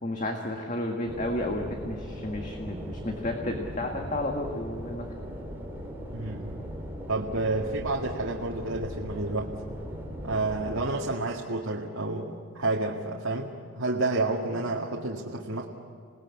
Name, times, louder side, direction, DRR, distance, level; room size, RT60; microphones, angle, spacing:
voice 1, 0.0-5.1, left 1 dB, 40° left, 2 dB, 1.8 m, -32 dB
sound 1, 1.1-10.9, equal, 10° right, 3.3 m, -39 dB
voice 2, 6.1-6.6 7.1-9.5 10.2-15.7, right 2 dB, 85° right, -2 dB, 2.0 m, -30 dB
27.0 x 19.5 x 8.5 m, 2.2 s
head